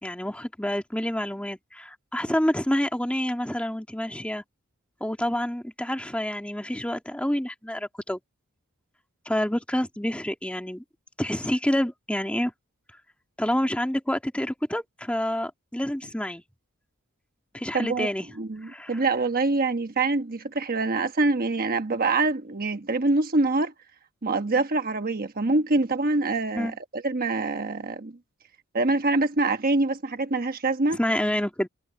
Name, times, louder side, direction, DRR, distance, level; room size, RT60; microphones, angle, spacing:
voice 1, 0.0-4.4 5.0-8.2 9.3-10.8 11.2-12.5 13.4-16.4 17.5-18.3 18.7-19.0 26.5-26.8 30.9-31.7, left 1 dB, 5° left, 2.0 m, -28 dB
voice 2, 17.7-18.1 18.4-23.7 24.2-28.1 28.7-31.0, right 3 dB, 45° right, 1.2 m, -25 dB
head